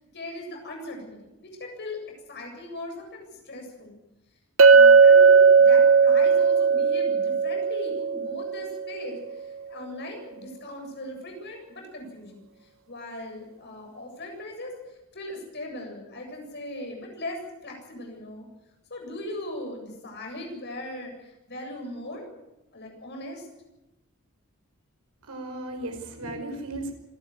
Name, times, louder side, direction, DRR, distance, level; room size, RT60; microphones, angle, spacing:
voice 1, 0.0-2.0 2.3-4.0 4.7-18.5 18.9-22.3 22.7-23.5, left 1 dB, 50° left, 2 dB, 7.6 m, -39 dB
Chink clink, 4.6-8.8, right 5 dB, 65° right, 1.1 m, -17 dB
voice 2, 25.2-26.9, right 1 dB, 90° right, 5 dB, 5.2 m, -35 dB
26.5 x 12.0 x 9.6 m, 0.96 s
head